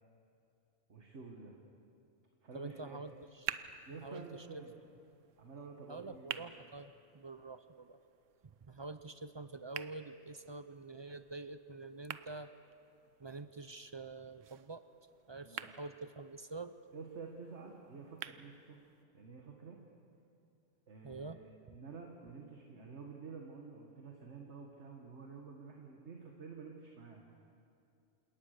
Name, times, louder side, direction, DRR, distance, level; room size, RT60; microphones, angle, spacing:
voice 1, 0.9-1.6 2.4-3.0 3.9-4.7 5.4-6.5 15.4-15.7 16.9-18.8 19.1-19.8 20.9-27.2, right 4 dB, 65° right, 1 dB, 1.9 m, -50 dB
voice 2, 2.5-3.1 3.4-3.6 4.0-4.6 5.9-8.0 8.4-12.5 13.2-14.8 15.3-16.8 21.0-21.4 21.7-21.8, right 3 dB, 40° right, 11 dB, 0.3 m, -47 dB
sound 1, 3.0-19.0, right 9 dB, 85° right, 1.1 m, -50 dB
28.5 x 18.5 x 6.7 m, 2.6 s
omnidirectional pair, 1.3 m